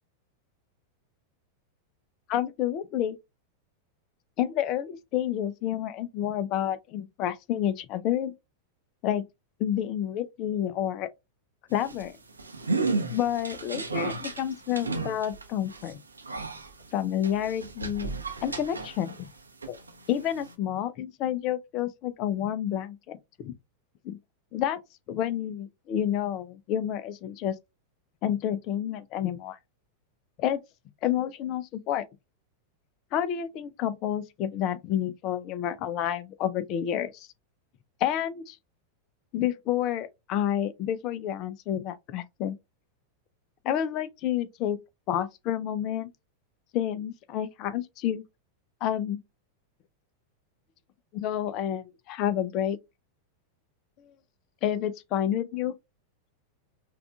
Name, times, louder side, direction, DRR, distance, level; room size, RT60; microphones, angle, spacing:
voice 1, 2.3-3.2 4.4-8.3 9.0-9.2 9.6-11.1 11.7-12.1 13.1-16.0 16.9-18.1 18.4-19.3 19.7-19.8 20.1-23.5 24.0-24.2 24.5-24.8 25.1-27.5 28.2-29.6 30.4-30.6 31.0-32.0 33.1-37.3 38.0-38.6 39.3-42.5 43.6-44.8 45.1-46.1 46.7-48.2 48.8-49.2 51.1-52.8 54.6-55.7, left 10 dB, 40° left, 0.5 m, -29 dB
sound 1, 11.7-19.3 19.6-20.5, right 3 dB, 80° right, 0.6 m, -34 dB
5.9 x 2.4 x 2.3 m
figure-of-eight pair, 90°, 0 cm